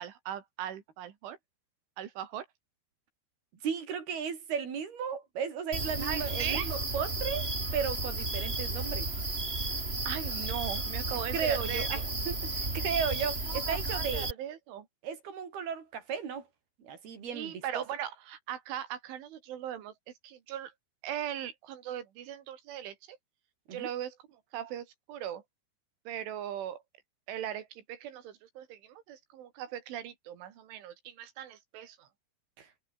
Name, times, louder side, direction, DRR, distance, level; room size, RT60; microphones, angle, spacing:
voice 1, 0.0-1.4 2.0-2.5 6.0-6.7 10.0-11.9 13.5-14.9 17.3-19.9 20.2-20.7 21.0-23.2 23.7-25.4 26.1-26.8 27.3-32.1, right 10 dB, 85° right, 5.0 m, -39 dB
voice 2, 3.6-9.1 11.3-12.0 12.3-14.3 15.0-16.5 16.8-17.8 23.7-23.9 32.6-32.7, right 7 dB, 55° right, 6.1 m, -35 dB
sound 1, 5.7-14.3, right 2 dB, 15° right, 2.6 m, -33 dB
omnidirectional pair, 5.4 m